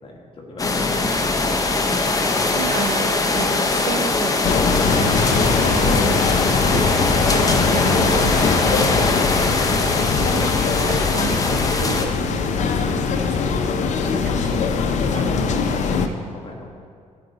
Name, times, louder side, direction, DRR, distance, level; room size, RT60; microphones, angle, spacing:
voice 1, 0.0-0.7 15.3-16.7, left 1 dB, 45° left, -1 dB, 1.7 m, -39 dB
sound 1, 0.6-12.1, left 3 dB, 25° left, 0.7 m, -21 dB
voice 2, 1.9-12.9 13.1-13.8 14.1-15.6, right 9 dB, 75° right, 10 dB, 0.4 m, -34 dB
sound 2, 4.4-16.1, left 5 dB, 65° left, 0.6 m, -21 dB
13.0 x 4.9 x 4.0 m, 2.2 s
cardioid pair, 115°, 13 cm